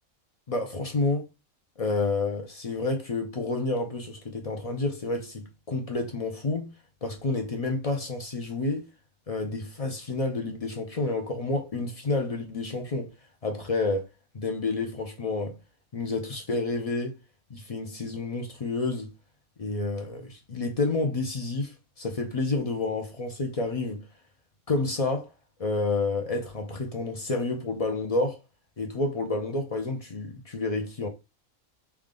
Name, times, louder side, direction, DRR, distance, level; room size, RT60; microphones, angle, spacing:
voice 1, 0.5-1.3 1.8-6.7 7.0-8.8 9.3-13.1 13.4-14.1 14.3-15.6 15.9-17.2 17.5-19.1 19.6-24.0 24.7-25.3 25.6-28.4 28.8-31.1, left 3 dB, 50° left, 0.4 m, -29 dB
3.4 x 2.3 x 3.6 m
omnidirectional pair, 1.5 m